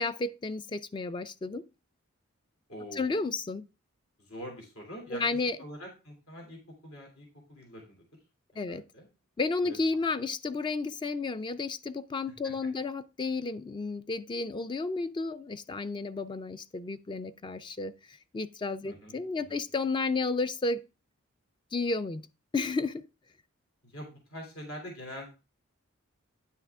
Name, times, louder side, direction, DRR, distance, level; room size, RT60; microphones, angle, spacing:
voice 1, 0.0-1.6 2.9-3.6 5.1-5.6 8.6-8.8 9.4-20.8 21.7-22.2 22.5-23.0, left 3 dB, 20° left, 0.3 m, -32 dB
voice 2, 2.7-3.1 4.2-5.2 5.6-8.0 8.5-9.1 9.6-9.8 12.4-12.5 18.8-19.6 23.8-25.3, equal, 75° left, 2.7 m, -44 dB
9.4 x 5.7 x 3.5 m
head